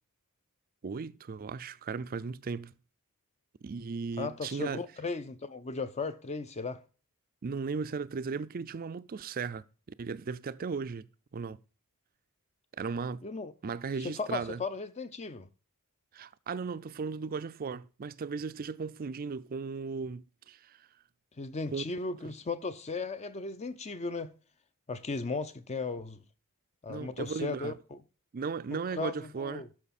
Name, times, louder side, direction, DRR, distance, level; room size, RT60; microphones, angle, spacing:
voice 1, 0.8-2.7 3.6-4.8 7.4-9.6 10.0-11.6 12.8-13.2 13.6-14.6 16.1-20.8 21.7-21.8 26.9-27.8 28.3-29.7, right 5 dB, 40° right, 0.4 m, -36 dB
voice 2, 4.2-6.8 13.2-13.5 14.0-15.5 21.4-24.3 24.9-26.2 26.8-28.0 28.7-29.7, left 3 dB, 30° left, 0.5 m, -36 dB
12.5 x 5.7 x 4.2 m
head